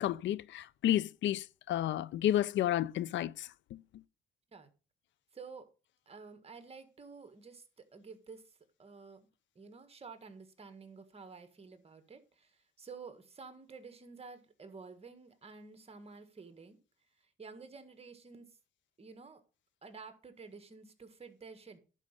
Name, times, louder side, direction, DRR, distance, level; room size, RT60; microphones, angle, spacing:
voice 1, 0.0-3.8, left 12 dB, 70° left, 0.5 m, -31 dB
voice 2, 5.3-5.7 6.0-9.3 9.5-16.8 17.2-18.5 19.0-19.4 19.8-21.8, right 4 dB, 30° right, 1.6 m, -51 dB
11.0 x 5.0 x 5.4 m
cardioid pair, 90°, 20 cm